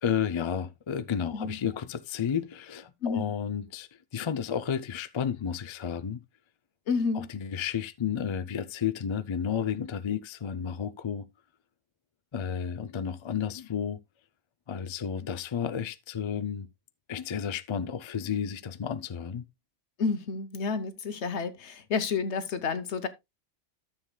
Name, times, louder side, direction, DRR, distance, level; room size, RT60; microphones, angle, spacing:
voice 1, 0.0-3.9 4.1-6.2 7.3-11.3 12.3-14.0 14.7-16.7 17.1-19.5, left 7 dB, 45° left, 0.3 m, -32 dB
voice 2, 6.9-7.3 20.0-23.1, left 5 dB, 70° left, 1.2 m, -30 dB
13.0 x 7.1 x 2.3 m
omnidirectional pair, 1.2 m